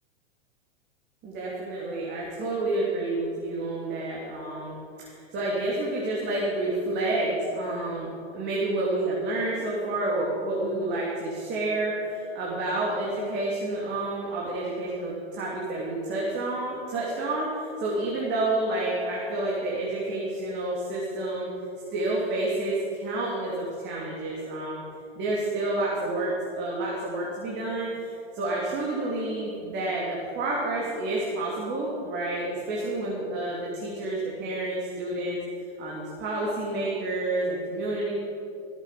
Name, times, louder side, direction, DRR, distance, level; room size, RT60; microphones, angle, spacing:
voice 1, 1.2-21.5 21.9-24.8 25.2-35.4 35.8-38.1, right 2 dB, 35° right, -5 dB, 3.1 m, -29 dB
16.5 x 8.3 x 7.6 m, 2.7 s
hypercardioid pair, 125°, 32 cm